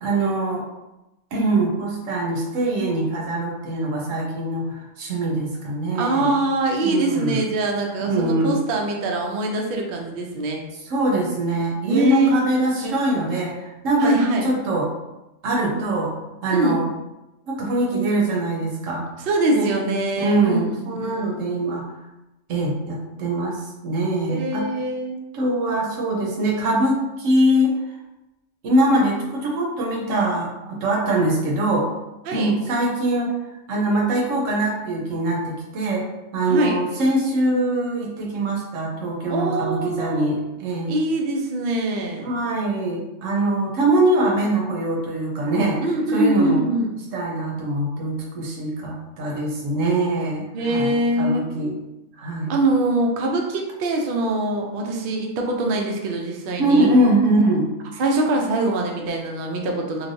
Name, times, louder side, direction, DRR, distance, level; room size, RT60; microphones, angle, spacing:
voice 1, 0.0-0.7 1.3-6.3 6.8-7.5 7.7-8.6 10.8-14.9 15.4-16.1 16.4-16.8 17.5-19.0 19.5-19.7 20.2-21.8 22.5-24.7 25.3-27.8 28.6-31.9 32.3-33.3 33.7-40.9 42.2-45.8 46.1-46.6 47.1-51.7 52.2-52.5 56.6-57.7, right 1 dB, 85° right, -2 dB, 1.1 m, -23 dB
voice 2, 5.9-10.6 11.8-12.4 14.0-14.4 16.5-16.8 19.2-21.3 24.3-25.2 32.3-32.5 36.5-36.8 39.3-40.3 40.9-42.4 45.8-46.9 50.5-51.5 52.5-56.9 58.0-60.1, right 2 dB, 60° right, 1 dB, 0.6 m, -23 dB
3.2 x 2.5 x 2.6 m, 0.98 s
omnidirectional pair, 1.3 m